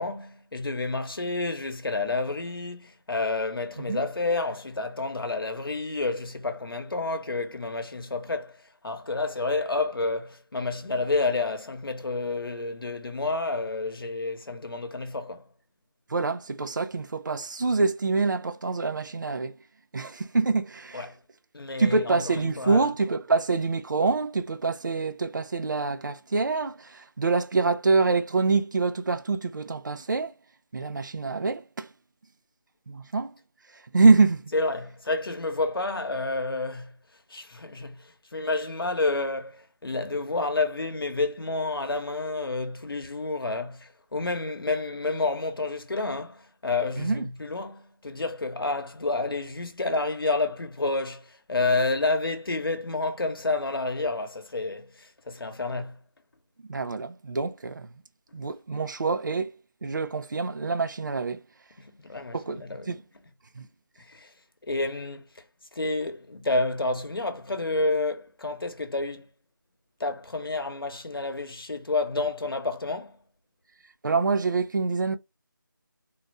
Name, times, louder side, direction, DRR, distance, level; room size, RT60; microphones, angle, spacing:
voice 1, 0.0-15.4 20.9-21.2 21.5-22.9 34.5-36.9 37.3-56.0 61.8-63.0 64.0-64.3 64.7-65.4 65.7-69.3 70.0-73.2, left 3 dB, 85° left, 0.9 m, -29 dB
voice 2, 16.1-19.5 19.9-21.1 21.8-30.3 30.7-31.9 32.9-33.3 33.7-34.5 47.0-47.3 56.7-57.9 58.3-59.5 59.8-61.4 62.3-63.0 63.6-63.7 74.0-75.2, right 4 dB, 60° right, 0.5 m, -25 dB
3.9 x 2.1 x 2.5 m
figure-of-eight pair, 175°, 12 cm